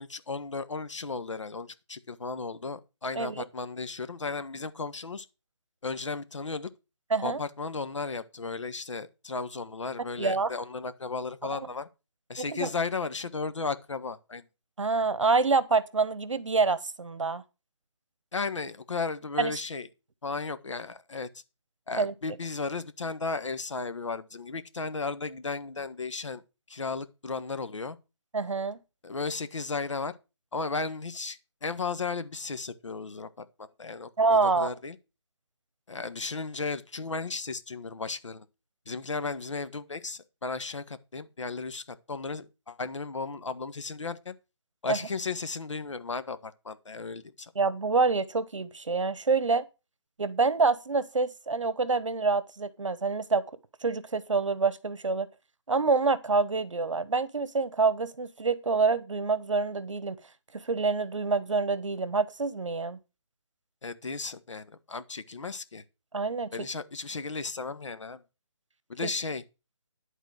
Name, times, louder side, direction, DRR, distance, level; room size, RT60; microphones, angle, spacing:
voice 1, 0.0-5.2 5.8-6.7 7.2-11.9 12.3-14.4 18.3-19.9 20.2-21.4 21.9-26.4 26.7-28.0 29.0-30.1 30.5-35.0 35.9-38.4 38.9-44.3 44.8-47.5 63.8-65.8 66.5-68.2 68.9-69.4, left 4 dB, 75° left, 1.4 m, -35 dB
voice 2, 10.2-10.5 11.4-11.6 12.4-12.7 14.8-17.4 19.4-19.6 22.0-22.1 28.3-28.8 34.2-34.7 44.9-45.0 47.5-49.6 50.2-53.4 53.8-55.3 55.7-60.2 60.5-63.0 66.1-66.7 69.0-69.1, right 4 dB, 80° right, 1.2 m, -27 dB
11.0 x 4.2 x 7.7 m
hypercardioid pair, 170°, 16 cm